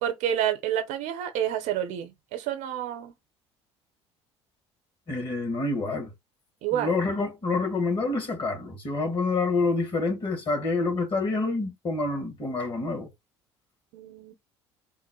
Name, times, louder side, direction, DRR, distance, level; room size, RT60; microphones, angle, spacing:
voice 1, 0.0-3.1 6.6-7.0 13.9-14.3, right 10 dB, 60° right, 0.9 m, -29 dB
voice 2, 5.1-6.1 6.7-13.1, left 3 dB, 35° left, 2.1 m, -27 dB
3.7 x 2.1 x 4.3 m
figure-of-eight pair, 60°, 14 cm